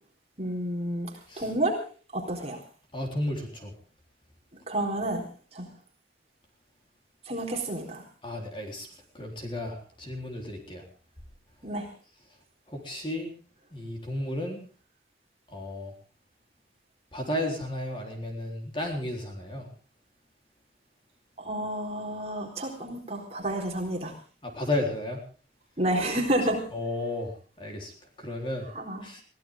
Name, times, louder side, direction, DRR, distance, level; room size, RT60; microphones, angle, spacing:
voice 1, 0.4-1.1 1.4-1.7 2.1-2.6 4.7-5.2 5.5-5.7 7.3-8.0 11.6-11.9 21.4-24.1 25.8-26.6 28.7-29.1, right 1 dB, 35° right, 1 dB, 4.1 m, -30 dB
voice 2, 2.9-3.7 8.2-8.9 9.1-10.8 12.7-13.3 13.7-14.6 15.5-15.9 17.1-19.7 24.4-25.2 26.7-27.9 28.2-28.7 29.0-29.2, left 1 dB, 25° left, 1 dB, 3.8 m, -33 dB
22.5 x 16.0 x 3.7 m, 0.37 s
head